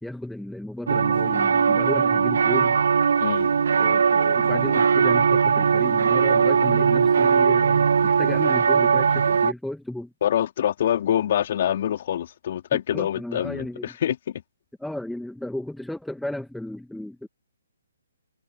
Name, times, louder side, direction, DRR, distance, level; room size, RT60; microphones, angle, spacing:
voice 1, 0.0-2.8 3.8-10.1 12.9-14.0 14.8-17.3, left 1 dB, ahead, 2.0 m, -33 dB
sound 1, 0.9-9.5, right 6 dB, 60° right, 1.4 m, -20 dB
voice 2, 3.2-3.5 10.2-14.4, left 10 dB, 45° left, 4.5 m, -25 dB
figure-of-eight pair, 135°, 0 cm